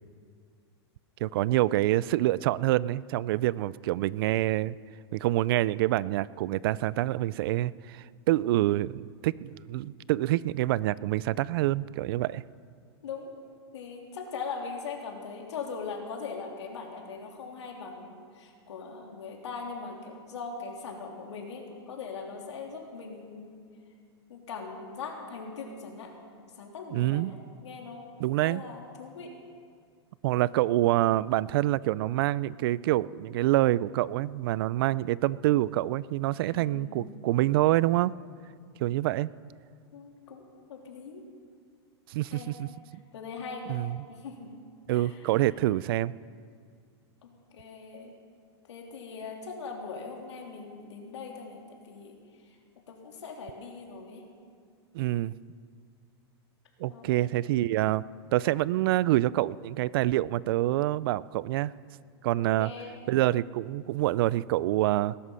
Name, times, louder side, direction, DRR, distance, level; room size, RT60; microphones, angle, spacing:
voice 1, 1.2-4.7 5.1-12.4 26.9-27.3 28.2-28.6 30.2-38.1 38.8-39.3 42.1-42.7 43.7-44.0 44.9-46.1 54.9-55.3 56.8-58.0 58.3-61.7 62.2-62.7 63.1-65.1, right 15 dB, 55° right, 21 dB, 0.4 m, -26 dB
voice 2, 13.7-23.5 24.3-26.1 26.5-29.3 36.4-37.2 39.9-41.2 42.3-42.6 43.1-43.8 44.1-44.5 44.9-45.4 47.2-48.2 48.7-52.6 52.9-54.3 56.9-57.3 62.6-63.1, left 5 dB, 90° left, 1 dB, 3.2 m, -41 dB
20.0 x 11.5 x 5.6 m, 2.1 s
supercardioid pair, 145°, 14 cm